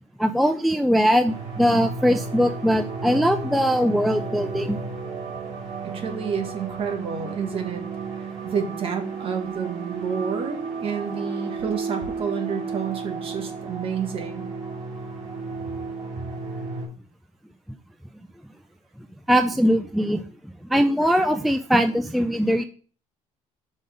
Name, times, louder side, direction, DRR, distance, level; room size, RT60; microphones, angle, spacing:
voice 1, 0.2-4.8 19.3-20.2 20.7-22.6, equal, ahead, 8 dB, 0.3 m, -21 dB
sound 1, 1.2-16.9, right 4 dB, 70° right, 2.8 m, -33 dB
voice 2, 5.8-7.8 8.2-14.5, right 6 dB, 45° right, 5 dB, 1.3 m, -30 dB
5.4 x 3.8 x 4.8 m, 0.42 s
cardioid pair, 130°, 13 cm